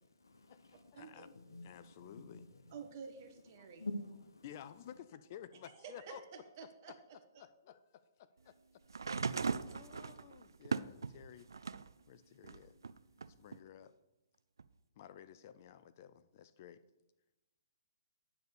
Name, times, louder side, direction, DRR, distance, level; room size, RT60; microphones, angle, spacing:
voice 1, 0.0-3.1 3.5-5.0, left 2 dB, 85° left, 9 dB, 1.0 m, -49 dB
voice 2, 0.9-1.3 1.6-2.4 3.6-3.7 4.4-6.2 6.9-7.0 7.4-11.5 12.1-12.8 13.3-14.0 15.0-16.8, left 10 dB, 45° left, 14 dB, 0.4 m, -54 dB
voice 3, 2.7-3.8 5.6-6.9 7.3-7.4, right 6 dB, 45° right, 4 dB, 1.5 m, -50 dB
sound 1, 8.9-11.9 12.4-13.6 14.6-14.7, right 5 dB, 85° right, 0.3 m, -39 dB
8.8 x 4.1 x 6.6 m, 1.0 s
hypercardioid pair, 135°, 2 cm